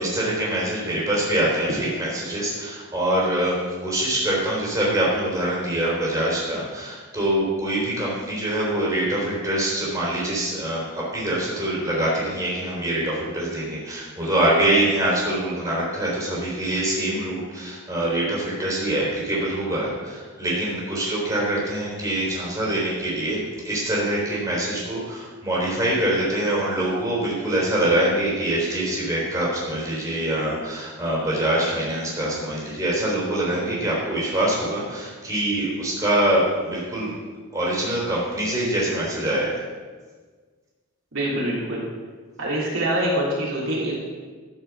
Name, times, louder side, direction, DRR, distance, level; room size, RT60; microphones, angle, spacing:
voice 1, 0.0-37.2 37.5-39.5, right 1 dB, 15° right, -6 dB, 3.6 m, -24 dB
voice 2, 41.1-41.8 42.4-44.0, right 1 dB, 65° right, -5 dB, 3.1 m, -24 dB
12.0 x 6.1 x 7.0 m, 1.5 s
head